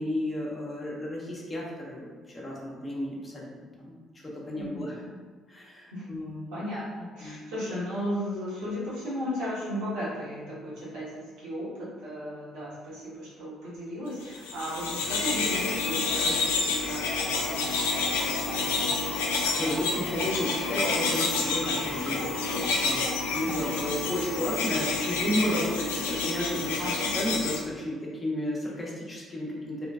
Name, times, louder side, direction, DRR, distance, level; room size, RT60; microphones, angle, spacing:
voice 1, 0.0-3.5 3.8-3.9 4.2-5.0 5.5-6.5 7.2-7.4 19.2-22.4 22.8-26.8 27.1-29.9, left 1 dB, 25° left, -4 dB, 1.0 m, -33 dB
voice 2, 4.5-5.1 5.9-6.1 6.5-18.9 23.4-23.9 26.8-27.1, equal, 65° right, -9 dB, 1.2 m, -36 dB
sound 1, 14.3-27.6, left 4 dB, 75° left, 0.4 m, -29 dB
Ringtone, 17.1-23.8, right 1 dB, 30° right, 1.0 m, -39 dB
3.0 x 3.0 x 2.4 m, 1.5 s
figure-of-eight pair, 45°, 0 cm